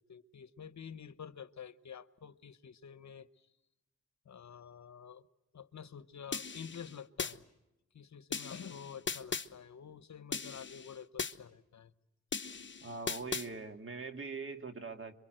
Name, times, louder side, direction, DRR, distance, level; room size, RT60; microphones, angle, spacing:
voice 1, 0.0-3.5 4.2-5.3 5.5-7.4 7.9-11.9 12.8-12.9, left 7 dB, 65° left, 13 dB, 1.0 m, -49 dB
sound 1, 6.3-7.3 8.3-9.5 10.3-11.3 12.3-13.5, left 5 dB, 40° left, 1.1 m, -38 dB
voice 2, 12.8-15.1, right 4 dB, 40° right, 6 dB, 2.1 m, -42 dB
27.0 x 24.0 x 7.8 m, 0.96 s
cardioid pair, 65°, 31 cm